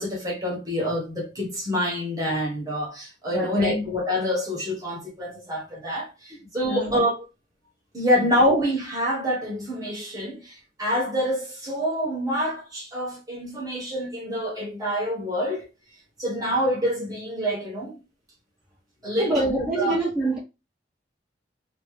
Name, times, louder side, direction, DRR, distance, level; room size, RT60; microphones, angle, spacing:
voice 1, 0.0-7.2 7.9-15.7 16.2-18.0 19.0-20.0, equal, 20° right, 1.4 m, -26 dB
voice 2, 3.3-3.9 6.6-7.0 8.4-8.5 19.2-20.4, right 1 dB, 5° right, 1.2 m, -26 dB
3.0 x 2.9 x 3.2 m
head